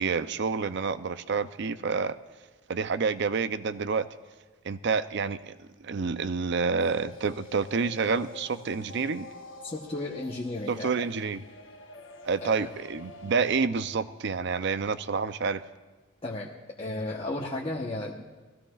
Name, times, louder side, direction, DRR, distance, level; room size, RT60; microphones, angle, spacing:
voice 1, 0.0-2.1 2.7-4.1 4.6-9.3 10.7-11.4 12.2-15.6, right 5 dB, 55° right, 13 dB, 0.5 m, -28 dB
sound 1, 6.8-13.6, left 3 dB, 65° left, 1.1 m, -47 dB
voice 2, 9.6-10.9 12.4-12.7 16.2-16.5 16.8-18.2, left 2 dB, 30° left, -3 dB, 1.0 m, -34 dB
21.5 x 16.0 x 2.4 m, 1.3 s
head